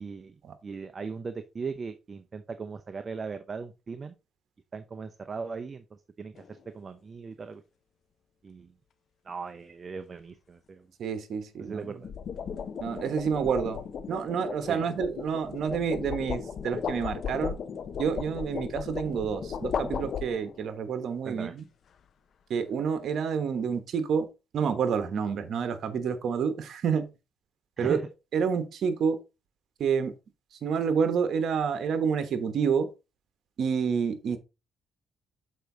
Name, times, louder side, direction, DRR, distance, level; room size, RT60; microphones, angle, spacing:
voice 1, 0.0-4.1 4.7-7.6 8.4-8.7 9.2-10.9 11.6-12.1 14.7-14.9 21.2-21.5 27.8-28.1, right 5 dB, 35° right, 0.6 m, -38 dB
sound 1, 6.4-6.7 11.8-20.7, left 7 dB, 60° left, 0.7 m, -36 dB
voice 2, 11.0-11.9 12.8-17.6 18.0-21.7 22.5-24.3 24.5-27.1 27.8-28.0 28.3-29.2 29.8-30.1 30.6-32.9 33.6-34.4, right 6 dB, 65° right, 1.1 m, -28 dB
6.7 x 4.7 x 3.9 m
cardioid pair, 90°, 0 cm